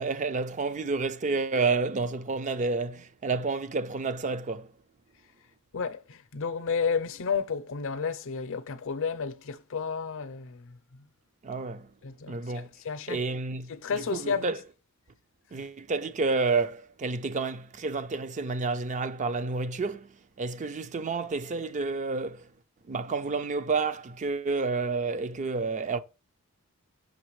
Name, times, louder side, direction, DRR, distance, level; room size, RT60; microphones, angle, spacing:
voice 1, 0.0-4.7 11.4-11.9 12.3-12.7 13.1-14.6 15.5-22.5 22.9-26.0, right 4 dB, 35° right, 0.4 m, -30 dB
voice 2, 5.7-10.8 12.0-13.2 13.7-14.5, left 5 dB, 65° left, 0.6 m, -32 dB
6.4 x 5.8 x 3.1 m
head